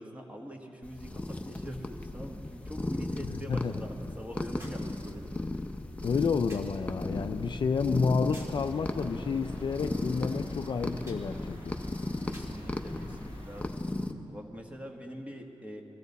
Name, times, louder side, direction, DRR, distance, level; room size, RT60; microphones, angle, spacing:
voice 1, 0.0-5.3 12.3-13.8 14.3-15.8, equal, 15° right, 2 dB, 1.3 m, -43 dB
sound 1, 0.8-14.1, left 2 dB, 15° left, 0.6 m, -36 dB
voice 2, 3.2-3.7 6.0-11.8, left 5 dB, 50° left, 8 dB, 0.4 m, -30 dB
sound 2, 4.6-4.9 6.5-6.8 8.3-8.7 11.1-11.3 12.3-12.6 13.7-13.8, equal, 30° right, 2.2 m, -51 dB
sound 3, 8.6-13.6, equal, 70° right, 3.5 m, -52 dB
21.5 x 15.5 x 4.1 m, 3.0 s
wide cardioid pair, 155°, 10 cm